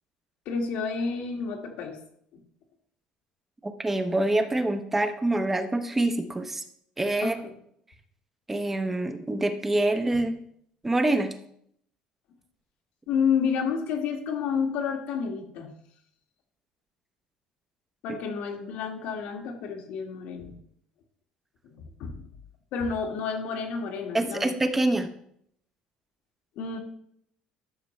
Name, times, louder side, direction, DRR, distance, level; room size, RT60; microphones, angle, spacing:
voice 1, 0.5-2.0 7.2-7.4 10.1-10.2 13.1-15.7 18.0-20.6 21.6-22.2 22.7-24.5 26.6-26.8, left 6 dB, 70° left, 3 dB, 1.7 m, -30 dB
voice 2, 3.6-6.6 7.0-7.4 8.5-10.4 10.8-11.4 18.1-18.2 24.1-25.1, right 2 dB, 10° right, 7 dB, 0.8 m, -26 dB
13.0 x 6.8 x 3.2 m, 0.69 s
cardioid pair, 155°, 2 cm